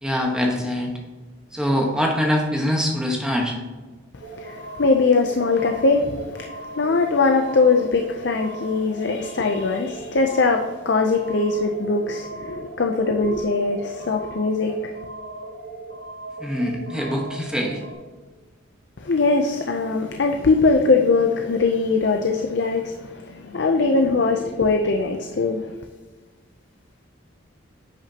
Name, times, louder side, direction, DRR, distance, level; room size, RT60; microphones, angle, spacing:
voice 1, 0.0-0.9 1.5-3.6 16.4-17.8, equal, 5° right, 1.2 m, -23 dB
sound 1, 4.2-17.9, right 2 dB, 55° right, 1.5 m, -38 dB
voice 2, 4.3-15.0 19.0-25.7, left 3 dB, 60° left, 0.6 m, -21 dB
10.0 x 6.2 x 2.9 m
head